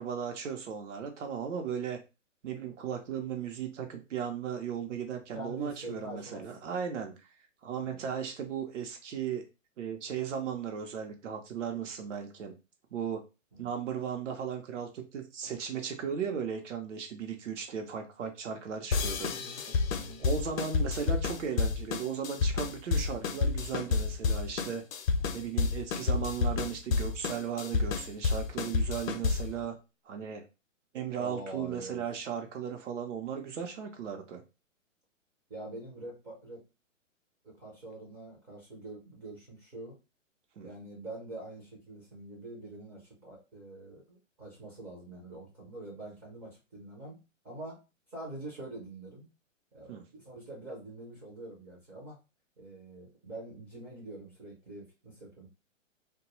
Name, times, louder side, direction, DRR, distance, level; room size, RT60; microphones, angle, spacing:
voice 1, 0.0-2.0 2.4-7.1 7.6-9.4 9.8-12.5 12.9-13.2 13.6-19.3 19.7-19.8 20.2-24.8 25.3-29.8 30.1-30.4 30.9-34.4 40.6-40.7 49.9-50.0, right 7 dB, 65° right, 4 dB, 0.8 m, -36 dB
voice 2, 5.3-6.5 7.8-8.0 13.5-13.7 19.2-19.6 19.9-20.2 31.2-32.0 35.5-36.6 37.4-40.0 40.6-47.2 47.4-47.8 48.1-49.3 49.7-52.2 52.6-55.5, right 2 dB, 10° right, -5 dB, 0.4 m, -45 dB
sound 1, 18.9-29.6, left 4 dB, 85° left, 0.6 m, -30 dB
2.3 x 2.3 x 2.9 m, 0.28 s
hypercardioid pair, 140°, 39 cm